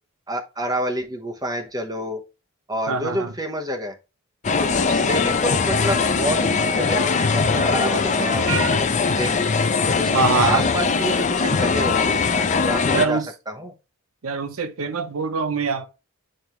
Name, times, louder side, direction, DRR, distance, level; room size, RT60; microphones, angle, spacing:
voice 1, 0.3-2.2 2.7-3.9 4.6-8.9 9.2-9.5 9.9-10.1 10.4-12.2 12.6-13.7, equal, 20° right, 1.0 m, -28 dB
voice 2, 2.9-3.3 8.5-8.8 10.1-10.6 12.9-13.3 14.2-15.9, right 4 dB, 80° right, 0.8 m, -23 dB
sound 1, 4.4-13.1, left 4 dB, 35° left, 0.5 m, -21 dB
8.8 x 3.5 x 3.0 m
head